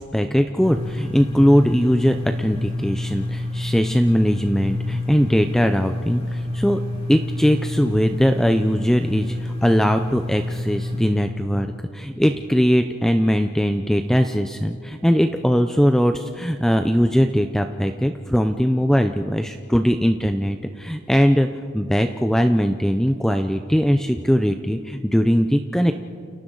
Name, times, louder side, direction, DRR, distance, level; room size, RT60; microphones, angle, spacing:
voice 1, 0.0-6.8 7.1-21.5 21.7-25.9, equal, ahead, 6 dB, 0.5 m, -20 dB
sound 1, 0.6-11.1, left 1 dB, 30° left, 4.0 m, -28 dB
29.5 x 29.0 x 3.9 m, 2.2 s
head